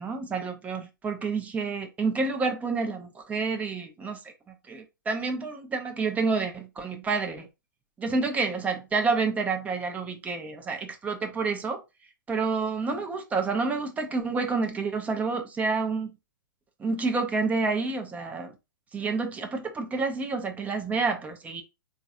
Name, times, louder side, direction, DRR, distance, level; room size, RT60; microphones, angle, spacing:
voice 1, 0.0-7.5 8.0-11.8 12.3-16.1 16.8-18.5 18.9-21.6, right 4 dB, 15° right, 0.5 m, -29 dB
3.8 x 2.4 x 2.6 m
figure-of-eight pair, 110°, 11 cm